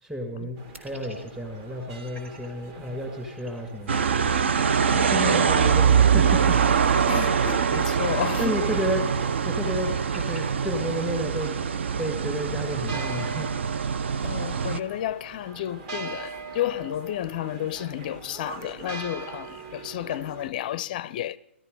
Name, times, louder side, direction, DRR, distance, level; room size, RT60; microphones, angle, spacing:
voice 1, 0.0-4.0 5.1-7.0 8.4-9.0 9.4-11.5 12.0-13.5, equal, 5° right, 2.1 m, -31 dB
sound 1, 0.6-20.5, right 4 dB, 35° right, 1.6 m, -43 dB
sound 2, 0.7-2.5 2.8-2.9 3.2-5.0 5.3-5.4 5.9-7.5 8.1-10.4, right 2 dB, 75° right, 3.5 m, -47 dB
sound 3, 3.9-14.8, right 7 dB, 60° right, 0.6 m, -23 dB
voice 2, 4.9-5.3 7.1-8.8 14.2-21.4, left 13 dB, 40° left, 0.5 m, -32 dB
17.0 x 13.5 x 5.3 m
figure-of-eight pair, 125°, 7 cm